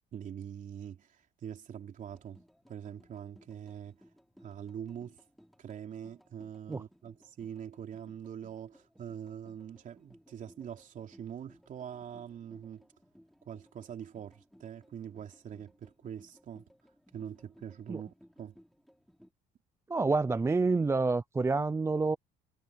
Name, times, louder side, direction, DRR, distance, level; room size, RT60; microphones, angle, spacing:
voice 1, 0.1-2.4 2.7-4.0 4.4-5.2 5.6-12.9 13.5-16.7 17.1-18.6, right 9 dB, 50° right, 3.5 m, -44 dB
sound 1, 2.1-19.3, equal, ahead, 3.5 m, -62 dB
voice 2, 19.9-22.2, right 3 dB, 15° right, 0.5 m, -28 dB
cardioid pair, 110°, 17 cm